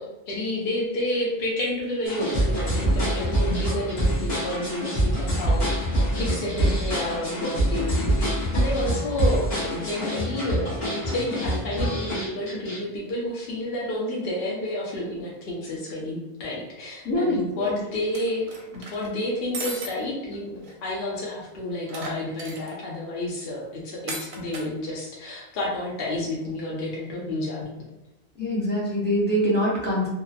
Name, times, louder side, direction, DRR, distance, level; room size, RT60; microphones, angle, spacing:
voice 1, 0.0-5.7 6.2-18.4 18.7-27.9, left 1 dB, 65° left, -5 dB, 0.8 m, -30 dB
sound 1, 2.1-12.8, right 1 dB, 45° left, 1.1 m, -25 dB
voice 2, 17.0-17.8 28.4-30.1, equal, 10° left, -6 dB, 0.6 m, -24 dB
sound 2, 18.1-19.1 19.5-19.9 20.3-20.4 20.6-20.7 21.9-22.8 24.1-24.7, right 3 dB, 60° right, 0.6 m, -35 dB
2.8 x 2.1 x 2.3 m, 0.97 s
omnidirectional pair, 1.1 m